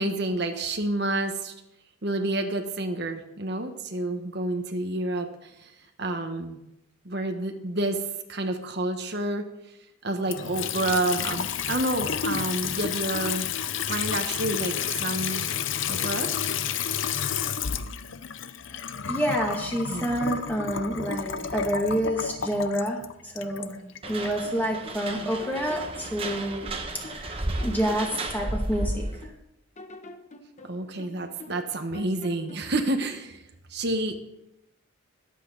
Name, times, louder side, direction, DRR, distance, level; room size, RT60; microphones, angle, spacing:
voice 1, 0.0-1.5 2.0-5.7 6.0-6.6 7.0-9.5 10.0-13.5 13.9-15.5 15.9-16.3 19.9-20.1 30.6-34.2, right 2 dB, 50° right, 5 dB, 1.2 m, -29 dB
Water tap faucet / Sink (filling or washing) / Trickle dribble, 10.2-24.4, left 8 dB, 65° left, 0.6 m, -31 dB
voice 2, 19.1-23.8 24.1-26.7 27.0-29.1, equal, 10° left, -1 dB, 2.2 m, -28 dB
sound 1, 24.0-25.0 25.4-27.3 27.6-29.4 29.8-31.7 31.9-32.8, left 2 dB, 35° left, 1.1 m, -46 dB
sound 2, 24.0-29.2, right 2 dB, 25° right, 1.2 m, -33 dB
22.0 x 8.4 x 4.0 m, 0.89 s
head